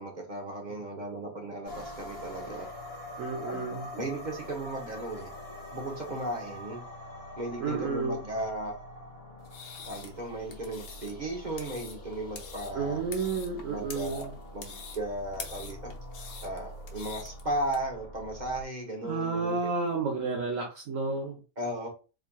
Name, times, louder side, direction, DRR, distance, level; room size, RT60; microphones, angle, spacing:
voice 1, 0.0-2.7 3.4-5.3 5.7-6.8 7.4-8.7 9.9-13.0 13.7-14.3 14.5-15.9 16.4-19.6 21.6-21.9, right 1 dB, 35° right, 1.0 m, -36 dB
sound 1, 1.7-18.6, left 1 dB, 40° left, 1.9 m, -45 dB
voice 2, 3.2-3.9 7.6-8.2 12.7-14.3 19.0-21.4, right 4 dB, 65° right, 1.2 m, -31 dB
sound 2, 9.4-17.8, left 6 dB, 65° left, 1.1 m, -46 dB
4.2 x 3.7 x 2.3 m
omnidirectional pair, 1.5 m